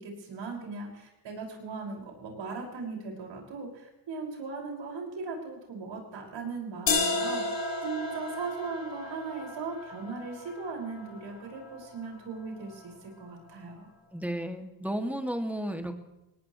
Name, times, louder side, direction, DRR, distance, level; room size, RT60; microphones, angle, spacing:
voice 1, 0.0-13.9, right 4 dB, 75° right, 0 dB, 5.8 m, -38 dB
sound 1, 6.9-12.8, left 3 dB, 70° left, 5.3 m, -34 dB
voice 2, 14.1-15.9, equal, 5° right, 5 dB, 2.2 m, -33 dB
20.0 x 18.5 x 3.2 m, 0.95 s
cardioid pair, 100°, 44 cm